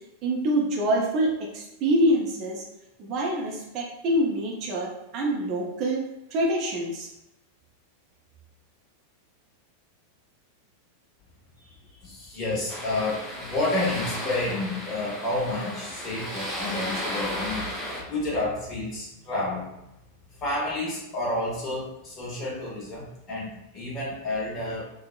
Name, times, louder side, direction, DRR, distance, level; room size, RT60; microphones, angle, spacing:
voice 1, 0.2-2.6 3.0-6.0 6.3-7.1, right 1 dB, 40° right, -1 dB, 0.5 m, -25 dB
voice 2, 11.6-17.7 18.1-19.7 20.4-24.8, left 2 dB, 30° left, -5 dB, 1.1 m, -30 dB
sound 1, 12.7-18.0, equal, 10° right, 0.9 m, -34 dB
3.3 x 2.1 x 2.3 m, 0.88 s
figure-of-eight pair, 90°, 0 cm